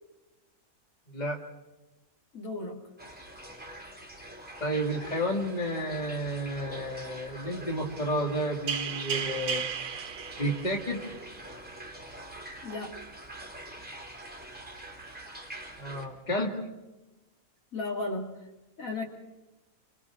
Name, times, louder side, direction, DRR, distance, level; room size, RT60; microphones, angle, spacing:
voice 1, 2.3-2.8 12.6-13.0 17.7-18.3 18.8-19.0, left 2 dB, 60° left, 2 dB, 2.5 m, -34 dB
sound 1, 3.0-16.0, right 1 dB, 5° right, 2.5 m, -45 dB
voice 2, 4.6-9.6 10.4-11.1 15.8-16.6, equal, 30° left, 2 dB, 2.3 m, -31 dB
sound 2, 5.0-6.3 7.9-8.3 8.7-11.4 11.7-11.8 15.1-15.3 16.0-16.1, right 7 dB, 60° right, 1.1 m, -37 dB
30.0 x 25.5 x 3.6 m, 1.1 s
omnidirectional pair, 1.6 m